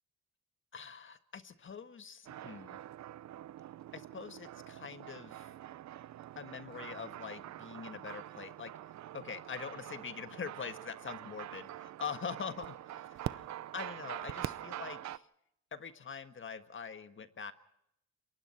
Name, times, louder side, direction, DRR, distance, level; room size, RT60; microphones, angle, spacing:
voice 1, 0.7-2.8 3.9-5.5 6.3-8.7 9.1-15.2 15.7-17.5, left 6 dB, 40° left, 9 dB, 1.6 m, -44 dB
sound 1, 2.3-15.2, right 12 dB, 65° right, 0.8 m, -45 dB
28.0 x 23.0 x 4.5 m, 0.78 s
cardioid pair, 90°, 30 cm